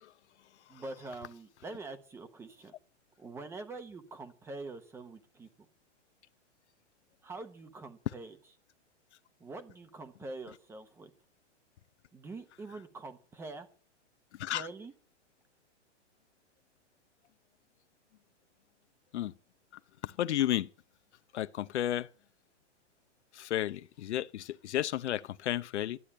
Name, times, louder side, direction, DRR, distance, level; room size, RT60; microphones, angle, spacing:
voice 1, 0.7-2.7 3.2-5.5 7.2-8.4 9.4-11.1 12.1-13.7 14.4-14.9, right 3 dB, 5° right, 0.9 m, -45 dB
voice 2, 20.0-20.7 21.3-22.1 23.4-26.0, left 12 dB, 70° left, 0.8 m, -32 dB
12.5 x 8.6 x 8.6 m
hypercardioid pair, 165°, 36 cm